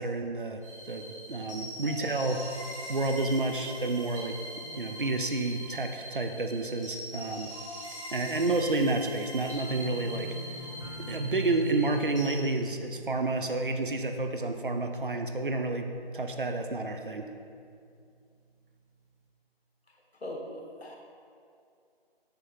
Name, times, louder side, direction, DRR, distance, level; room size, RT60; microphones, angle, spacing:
voice 1, 0.0-2.4 2.9-7.5 8.1-10.3 11.1-15.9 16.1-17.3, right 2 dB, 55° right, 5 dB, 0.5 m, -30 dB
sound 1, 0.6-12.4, equal, 30° left, 1.3 m, -42 dB
sound 2, 9.7-16.5 16.8-17.4 17.7-17.8, right 1 dB, 40° right, 1.3 m, -43 dB
voice 2, 20.2-21.0, left 1 dB, 90° left, 0 dB, 1.3 m, -39 dB
6.7 x 3.0 x 5.5 m, 2.4 s
figure-of-eight pair, 180°, 31 cm